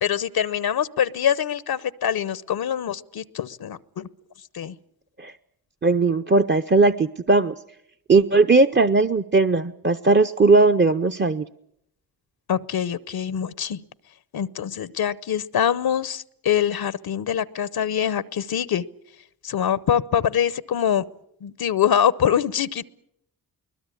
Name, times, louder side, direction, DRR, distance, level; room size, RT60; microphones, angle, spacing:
voice 1, 0.0-4.1 4.5-4.8 12.5-13.8 14.3-18.8 19.4-21.0 21.4-22.9, left 9 dB, 70° left, 18 dB, 0.9 m, -24 dB
voice 2, 5.8-7.5 8.1-11.4, right 3 dB, 30° right, 8 dB, 0.8 m, -18 dB
22.0 x 20.5 x 8.6 m, 0.75 s
supercardioid pair, 45°, 38 cm